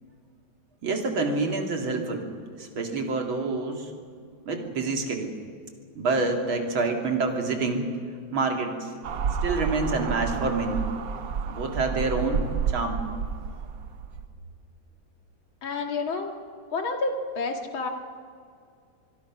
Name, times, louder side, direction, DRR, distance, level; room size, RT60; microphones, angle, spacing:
voice 1, 0.8-2.3 2.6-3.9 4.5-5.3 6.0-7.9 8.3-8.9 9.4-10.8 11.5-13.0, right 3 dB, 80° right, 3 dB, 3.3 m, -27 dB
sound 1, 9.0-14.3, right 6 dB, 55° right, 1.2 m, -30 dB
voice 2, 15.6-16.3 16.7-17.9, left 3 dB, 80° left, 4 dB, 2.9 m, -29 dB
25.5 x 21.5 x 6.0 m, 2.3 s
omnidirectional pair, 2.2 m